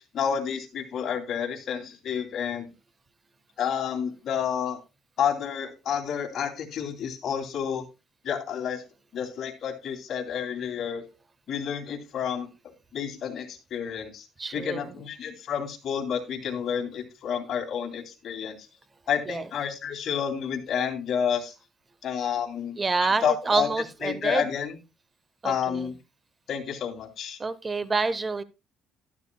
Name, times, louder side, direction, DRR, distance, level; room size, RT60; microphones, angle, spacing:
voice 1, 0.0-2.7 3.6-4.8 5.2-7.8 8.2-8.8 9.1-11.0 11.5-12.5 12.9-14.3 14.5-18.6 19.1-21.5 22.0-23.7 24.0-24.8 25.4-25.9 26.5-27.4, left 8 dB, 55° left, 2 dB, 2.7 m, -30 dB
voice 2, 14.4-14.9 19.3-19.4 22.8-24.5 25.4-25.9 27.4-28.4, right 4 dB, 25° right, 16 dB, 0.7 m, -27 dB
12.0 x 12.0 x 2.2 m, 0.27 s
cardioid pair, 120°, 0 cm